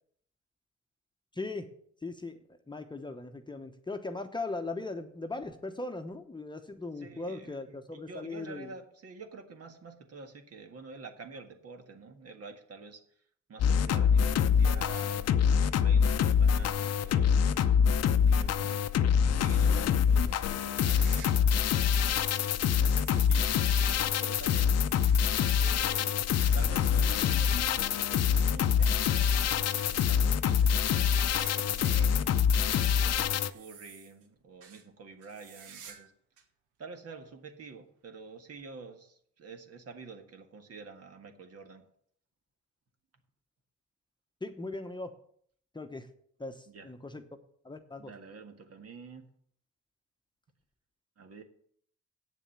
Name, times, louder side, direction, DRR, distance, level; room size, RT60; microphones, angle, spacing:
voice 1, 1.3-1.7 2.0-2.4 2.7-8.7 44.4-45.1 45.7-46.1 46.4-47.2 47.6-48.1, left 3 dB, 15° left, 6 dB, 1.0 m, -39 dB
voice 2, 7.0-13.0 13.5-17.7 18.2-22.2 22.8-24.8 25.6-26.3 26.5-32.4 33.0-36.1 36.8-41.8 46.7-46.9 48.0-49.3 51.2-51.4, right 4 dB, 55° right, 6 dB, 1.7 m, -48 dB
sound 1, 13.6-33.5, left 7 dB, 55° left, 0.7 m, -25 dB
sound 2, 20.7-22.4 22.7-32.1 32.4-34.3 34.6-34.8 35.2-36.1 36.4-36.5 37.2-37.3 38.6-38.7, right 7 dB, 90° right, 1.5 m, -53 dB
8.5 x 7.1 x 7.1 m, 0.64 s
cardioid pair, 90°, 30 cm